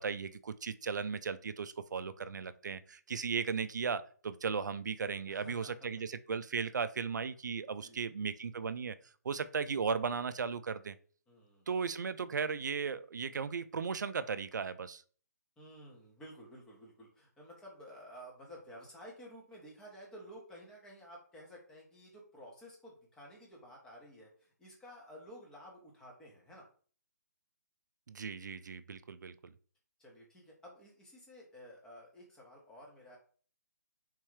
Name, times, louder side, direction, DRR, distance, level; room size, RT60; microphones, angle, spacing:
voice 1, 0.0-9.0 9.2-11.0 11.7-15.0 28.1-29.5, right 5 dB, 80° right, 14 dB, 0.4 m, -36 dB
voice 2, 5.3-5.8 7.6-8.0 11.3-11.7 15.6-26.6 30.0-33.2, equal, 5° left, -2 dB, 1.0 m, -53 dB
3.6 x 3.0 x 3.2 m, 0.43 s
hypercardioid pair, 155°, 10 cm